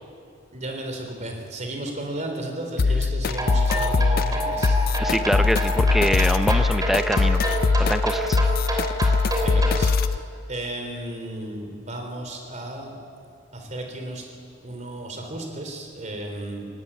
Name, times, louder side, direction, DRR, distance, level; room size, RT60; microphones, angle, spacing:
voice 1, 0.5-4.8 9.4-13.0 13.5-14.2 14.6-16.7, right 1 dB, 40° right, 3 dB, 3.6 m, -34 dB
sound 1, 2.8-10.2, left 4 dB, 50° left, 0.5 m, -22 dB
sound 2, 3.3-9.8, right 1 dB, 20° right, 3.2 m, -29 dB
voice 2, 5.0-7.4 7.8-8.4, equal, ahead, 10 dB, 0.7 m, -24 dB
19.0 x 18.5 x 8.6 m, 2.4 s
head